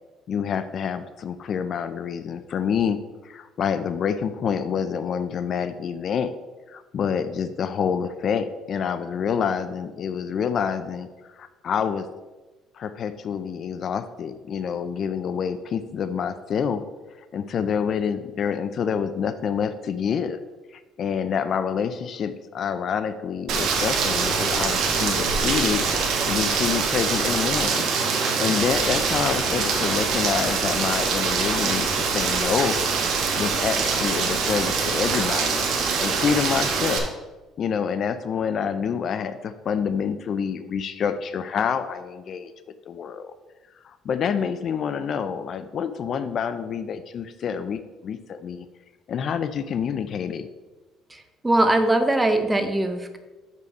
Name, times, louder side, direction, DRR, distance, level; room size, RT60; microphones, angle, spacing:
voice 1, 0.3-6.3 6.7-11.1 11.3-12.1 12.7-16.8 17.3-20.4 20.7-25.8 26.3-27.9 28.2-32.8 33.4-35.7 36.0-37.1 37.6-42.5 42.9-43.3 43.8-48.7 49.1-50.5, left 7 dB, 45° left, 12 dB, 0.4 m, -27 dB
Rain, 23.5-37.0, right 5 dB, 65° right, 1.3 m, -24 dB
voice 2, 51.1-53.2, right 1 dB, 10° right, 8 dB, 0.7 m, -21 dB
6.4 x 5.4 x 5.3 m, 1.2 s
cardioid pair, 135°, 0 cm